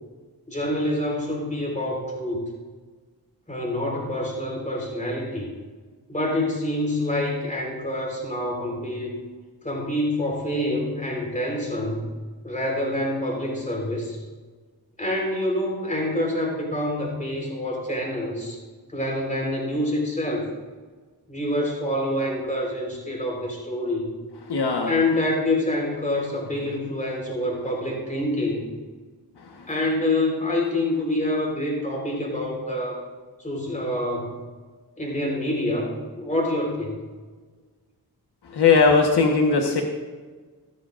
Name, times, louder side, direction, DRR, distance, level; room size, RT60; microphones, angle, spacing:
voice 1, 0.5-2.4 3.5-5.5 6.1-9.1 9.6-12.1 12.4-14.2 15.0-18.6 18.9-20.5 21.3-24.1 24.9-28.7 29.7-33.0 33.4-34.3 35.0-37.0, left 1 dB, 20° left, -1 dB, 4.1 m, -26 dB
voice 2, 24.5-24.9 29.4-29.7 38.5-39.8, left 4 dB, 85° left, 1 dB, 1.4 m, -19 dB
16.5 x 13.0 x 2.6 m, 1.4 s
wide cardioid pair, 100°, 39 cm